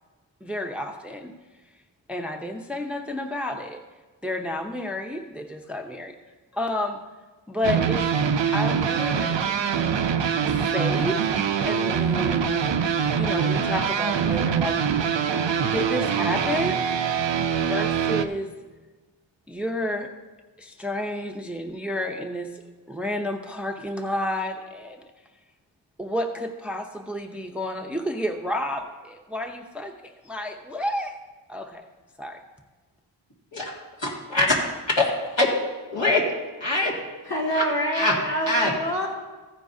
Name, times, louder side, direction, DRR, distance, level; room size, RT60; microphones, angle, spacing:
voice 1, 0.4-1.3 2.1-3.8 4.2-6.1 6.5-7.0 7.5-8.0 8.5-9.9 10.4-11.2 11.6-12.6 13.1-14.8 15.6-16.8 17.6-18.5 19.5-20.1 20.6-22.5 22.9-25.0 26.0-31.2 31.5-31.8 32.2-32.4, left 1 dB, 5° right, 4 dB, 0.6 m, -30 dB
sound 1, 7.6-18.2, right 7 dB, 70° right, 0.6 m, -24 dB
voice 2, 34.0-34.5 35.0-35.1 35.4-35.5 35.9-36.2 36.6-36.9 37.5-37.6 37.9-38.1 38.5-38.7, left 2 dB, 75° left, -4 dB, 2.2 m, -22 dB
voice 3, 37.2-39.1, right 1 dB, 55° left, -5 dB, 3.1 m, -26 dB
14.5 x 9.8 x 2.7 m, 1.3 s
wide cardioid pair, 70°, 46 cm